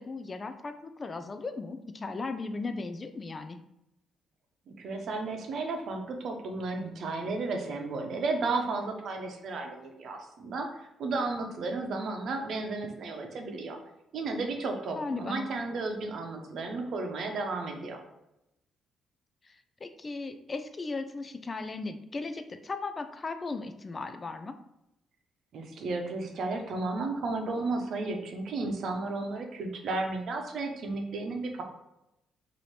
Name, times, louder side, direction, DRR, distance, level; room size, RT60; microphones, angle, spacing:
voice 1, 0.0-3.6 15.0-15.5 19.4-24.6, left 3 dB, 30° left, 9 dB, 0.4 m, -37 dB
voice 2, 4.7-13.8 14.1-18.0 25.5-31.6, right 3 dB, 65° right, 3 dB, 0.8 m, -33 dB
3.1 x 2.7 x 4.3 m, 0.87 s
cardioid pair, 90°, 0 cm